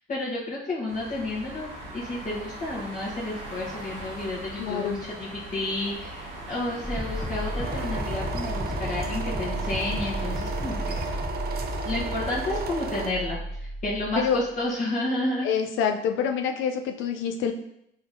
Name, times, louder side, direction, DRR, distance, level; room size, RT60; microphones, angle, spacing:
voice 1, 0.1-11.0 11.8-13.4 13.8-15.5, left 2 dB, 40° left, -8 dB, 1.1 m, -31 dB
sound 1, 0.9-11.2, right 1 dB, 90° right, 1.2 m, -40 dB
voice 2, 4.6-5.0 14.2-14.4 15.4-17.5, left 7 dB, 90° left, 5 dB, 0.4 m, -26 dB
sound 2, 6.8-14.5, left 1 dB, 10° left, 0.5 m, -33 dB
sound 3, 7.6-13.1, right 6 dB, 50° right, 0.5 m, -34 dB
3.8 x 3.5 x 2.6 m, 0.76 s
cardioid pair, 90°, 20 cm